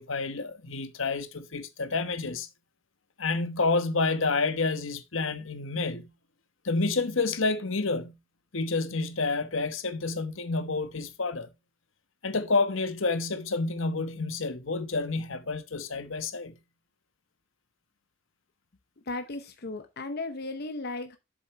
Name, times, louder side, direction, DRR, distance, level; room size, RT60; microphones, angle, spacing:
voice 1, 0.0-2.5 3.2-6.1 6.6-8.2 8.5-11.5 12.2-16.6, left 3 dB, 75° left, 1.1 m, -29 dB
voice 2, 19.1-21.2, left 2 dB, 50° left, 0.8 m, -35 dB
7.6 x 7.5 x 3.2 m
head